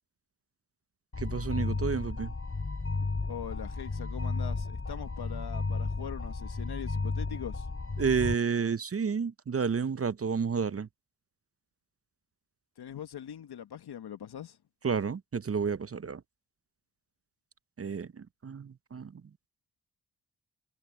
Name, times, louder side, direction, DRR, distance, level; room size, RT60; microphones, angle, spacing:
sound 1, 1.1-8.3, left 3 dB, 35° left, 3.8 m, -33 dB
voice 1, 1.2-2.3 8.0-10.9 14.8-16.2 17.8-19.2, right 6 dB, 35° right, 0.8 m, -31 dB
voice 2, 3.3-7.7 12.8-14.6, left 9 dB, 70° left, 1.7 m, -42 dB
supercardioid pair, 45°, 40 cm